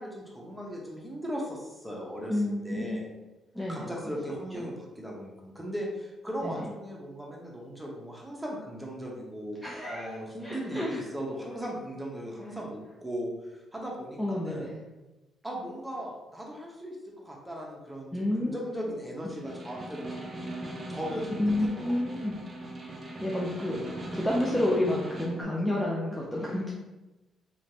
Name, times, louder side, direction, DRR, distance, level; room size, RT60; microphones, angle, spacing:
voice 1, 0.0-3.0 3.7-9.6 9.9-14.7 15.4-20.3 20.9-21.9, equal, 5° right, -3 dB, 0.9 m, -38 dB
voice 2, 2.3-3.1 3.5-4.1 4.5-4.7 6.4-6.7 9.6-10.1 10.4-11.0 14.2-14.7 18.1-18.5 21.4-22.4 23.0-26.7, left 1 dB, 10° left, -4 dB, 0.6 m, -30 dB
Snare drum, 19.3-25.4, right 1 dB, 30° right, 0.6 m, -40 dB
3.2 x 3.0 x 2.8 m, 1.1 s
cardioid pair, 90°, 0 cm